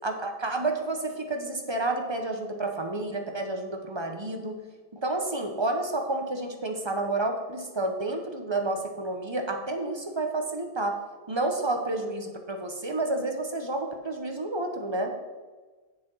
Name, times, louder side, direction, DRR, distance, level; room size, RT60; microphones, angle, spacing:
voice 1, 0.0-4.6 4.9-10.9 11.3-15.1, right 2 dB, 25° right, 4 dB, 1.0 m, -30 dB
8.0 x 6.8 x 5.5 m, 1.3 s
omnidirectional pair, 1.1 m